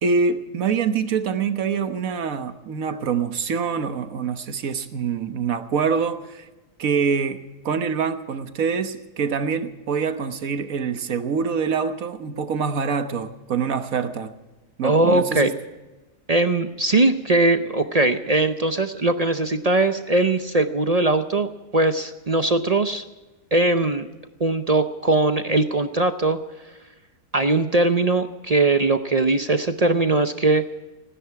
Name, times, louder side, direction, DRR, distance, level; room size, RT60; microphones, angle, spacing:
voice 1, 0.0-6.4 6.8-14.3 14.8-15.6, right 6 dB, 65° right, 1.5 m, -25 dB
voice 2, 14.8-15.5 16.3-21.5 21.7-23.0 23.5-24.1 24.4-26.4 27.3-30.6, right 2 dB, 45° right, 0.5 m, -20 dB
30.0 x 10.0 x 4.7 m
omnidirectional pair, 1.6 m